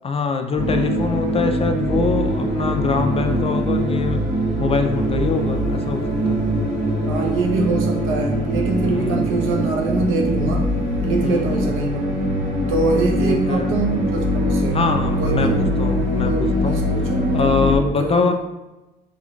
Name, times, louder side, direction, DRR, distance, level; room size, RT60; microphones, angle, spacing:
voice 1, 0.0-4.2 4.6-6.4 8.8-9.3 11.2-11.9 13.2-13.7 14.7-18.3, left 4 dB, 30° left, 6 dB, 0.4 m, -24 dB
sound 1, 0.6-17.8, equal, 35° right, 1.4 m, -22 dB
Engine, 4.7-11.2, left 3 dB, 90° left, 0.5 m, -35 dB
voice 2, 7.1-10.7 11.0-12.0 12.7-14.8 15.2-15.6 16.2-17.3 17.8-18.3, right 3 dB, 70° right, 0 dB, 0.8 m, -24 dB
3.6 x 3.3 x 2.4 m, 1.0 s
supercardioid pair, 80°, 21 cm